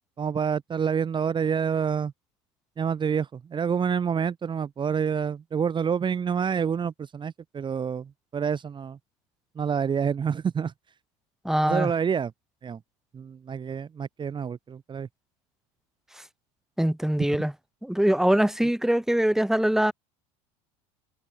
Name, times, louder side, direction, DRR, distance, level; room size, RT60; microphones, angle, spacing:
voice 1, 0.2-2.1 2.8-9.0 9.6-10.7 11.6-12.3 12.6-12.8 13.1-15.1, right 7 dB, 30° right, 1.8 m, -27 dB
voice 2, 11.4-11.9 16.8-17.5 17.8-19.9, right 1 dB, ahead, 2.9 m, -23 dB
supercardioid pair, 100°, 17 cm